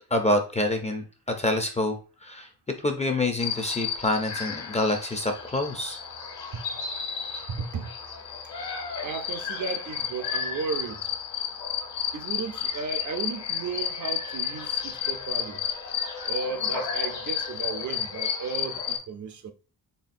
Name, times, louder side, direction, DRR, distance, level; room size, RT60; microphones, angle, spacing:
voice 1, 0.1-2.0 2.2-2.5 2.8-6.0, left 1 dB, 20° left, 0.4 m, -26 dB
sound 1, 3.4-19.0, left 7 dB, 75° left, 1.4 m, -32 dB
voice 2, 7.5-7.9 9.0-11.1 12.1-15.6 16.3-19.5, right 5 dB, 50° right, 0.4 m, -34 dB
4.3 x 3.4 x 2.5 m
wide cardioid pair, 145°, 41 cm